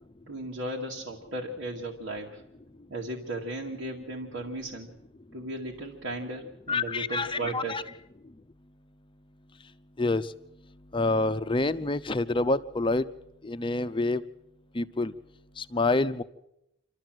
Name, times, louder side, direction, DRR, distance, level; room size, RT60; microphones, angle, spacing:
voice 1, 0.3-2.4 2.9-4.9 5.3-7.8, right 1 dB, 80° right, -2 dB, 2.2 m, -36 dB
voice 2, 6.7-7.8 10.0-10.3 10.9-13.1 13.4-14.2 14.7-15.1 15.6-16.2, left 2 dB, 25° left, 11 dB, 0.7 m, -27 dB
28.0 x 13.0 x 7.7 m, 0.84 s
head